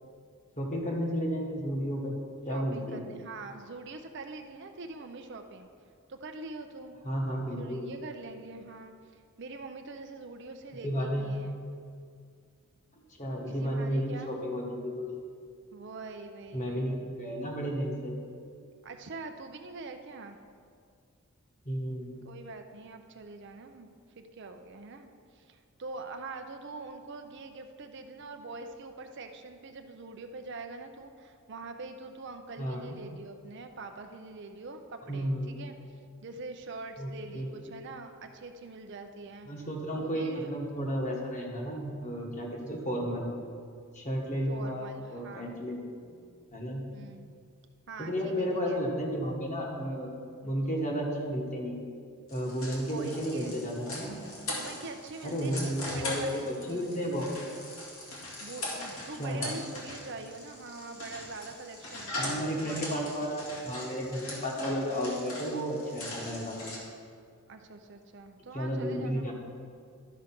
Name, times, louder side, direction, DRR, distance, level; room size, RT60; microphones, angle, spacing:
voice 1, 0.6-2.2 2.5-3.0 7.0-7.9 10.8-11.3 13.2-15.2 16.5-18.2 21.6-22.2 32.6-33.0 35.1-35.5 37.0-37.6 39.5-43.3 43.9-46.2 46.5-46.8 48.0-50.1 50.4-51.8 52.3-54.2 55.2-57.3 59.2-59.5 62.2-66.7 68.5-69.3, equal, 35° left, -1 dB, 1.5 m, -33 dB
voice 2, 2.5-5.7 6.1-7.0 7.6-11.6 13.4-14.3 15.7-17.1 18.8-20.4 22.2-23.9 24.2-35.8 36.2-39.5 39.9-40.5 44.5-45.6 46.9-47.3 47.9-48.8 52.9-53.6 54.4-57.3 58.4-63.1 63.4-63.5 67.5-69.3, right 3 dB, 50° right, 6 dB, 0.5 m, -44 dB
sound 1, 52.3-66.8, left 1 dB, 70° left, 2.2 m, -40 dB
12.0 x 5.0 x 5.9 m, 2.2 s
head